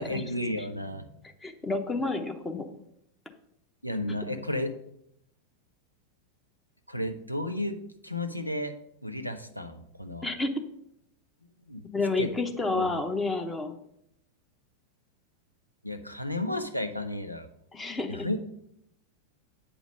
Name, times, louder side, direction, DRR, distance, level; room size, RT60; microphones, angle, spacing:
voice 1, 0.0-1.2 3.8-4.7 6.9-7.8 8.0-8.8 9.0-10.3 11.7-11.8 12.2-12.3 12.7-13.0 15.8-17.5 18.1-18.4, left 1 dB, 90° left, 7 dB, 0.7 m, -33 dB
voice 2, 1.4-2.6 10.2-10.5 11.9-13.8 17.7-18.3, left 3 dB, 15° left, 5 dB, 0.9 m, -30 dB
8.6 x 5.1 x 5.3 m, 0.75 s
figure-of-eight pair, 90°, 0 cm